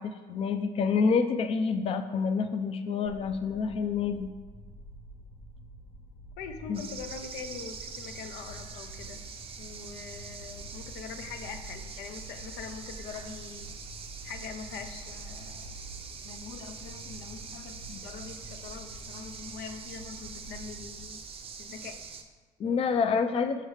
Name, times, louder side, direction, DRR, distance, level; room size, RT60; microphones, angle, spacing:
voice 1, 0.0-4.3 6.7-6.8 17.9-18.0 22.6-23.6, left 5 dB, 35° left, 8 dB, 0.4 m, -28 dB
sound 1, 3.1-21.0, equal, 55° left, 1.0 m, -48 dB
voice 2, 6.4-9.2 9.6-13.7 14.2-15.7 16.2-21.2 21.6-22.0 23.1-23.4, left 6 dB, 85° left, 7 dB, 0.6 m, -43 dB
sound 2, 6.7-22.2, right 5 dB, 35° right, 0.6 m, -44 dB
6.5 x 5.4 x 3.2 m, 1.3 s
cardioid pair, 110°, 17 cm